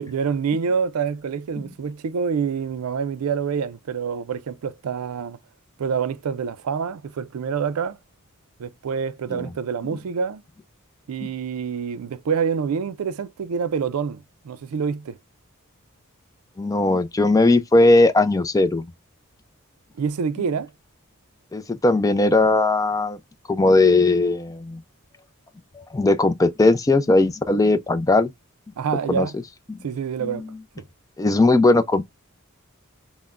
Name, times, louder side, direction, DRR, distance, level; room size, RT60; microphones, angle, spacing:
voice 1, 0.0-5.4 5.8-8.0 8.6-10.4 11.1-15.2 20.0-20.7 28.8-29.3 29.8-30.4, right 6 dB, 80° right, 0.4 m, -26 dB
voice 2, 16.6-18.9 21.5-23.2 23.5-24.8 25.7-28.3 29.1-29.3 29.7-29.8 30.2-30.5 31.2-32.0, left 2 dB, 15° left, 0.3 m, -18 dB
5.6 x 2.1 x 2.4 m
head